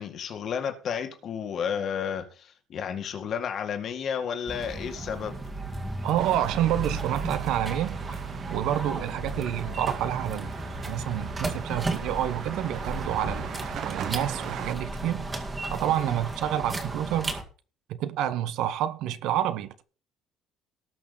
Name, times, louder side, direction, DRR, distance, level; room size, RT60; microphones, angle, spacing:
voice 1, 0.0-5.4 8.9-9.0, left 7 dB, 35° left, 1.9 m, -32 dB
sound 1, 4.5-17.4, right 2 dB, 15° right, 1.9 m, -34 dB
voice 2, 6.0-8.0 8.5-10.5 10.9-13.5 13.8-15.3 15.7-17.3 17.9-19.8, right 11 dB, 60° right, 1.2 m, -28 dB
sound 2, 6.2-14.8, right 9 dB, 45° right, 1.0 m, -41 dB
19.0 x 6.3 x 4.1 m
cardioid pair, 180°, 0 cm